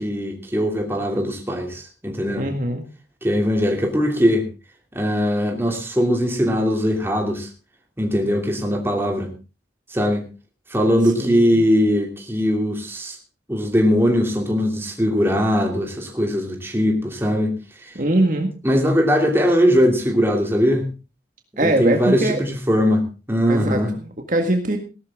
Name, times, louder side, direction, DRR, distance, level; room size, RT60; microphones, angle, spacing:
voice 1, 0.0-2.5 3.2-4.5 4.9-7.5 8.0-9.3 9.9-10.3 10.7-13.2 13.5-17.5 17.8-17.9 18.6-20.9 21.6-23.9, equal, 15° right, 2 dB, 2.8 m, -20 dB
voice 2, 2.4-2.8 11.2-11.6 18.0-18.5 21.6-22.4 23.5-24.8, right 1 dB, 45° right, 4 dB, 1.8 m, -22 dB
18.0 x 12.5 x 3.7 m, 0.31 s
head